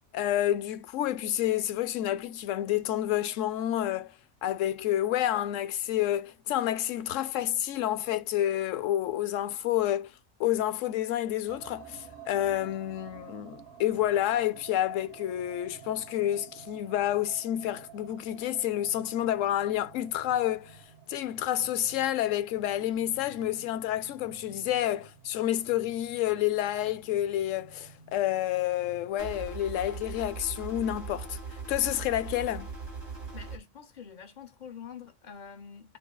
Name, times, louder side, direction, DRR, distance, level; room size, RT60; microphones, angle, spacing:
voice 1, 0.1-10.1 10.4-32.7, left 12 dB, 85° left, 1.0 m, -29 dB
sound 1, 11.5-29.1, right 8 dB, 60° right, 1.5 m, -51 dB
sound 2, 29.2-33.6, right 4 dB, 40° right, 2.1 m, -40 dB
voice 2, 33.3-36.0, left 7 dB, 50° left, 0.6 m, -46 dB
4.6 x 3.4 x 2.3 m
omnidirectional pair, 1.3 m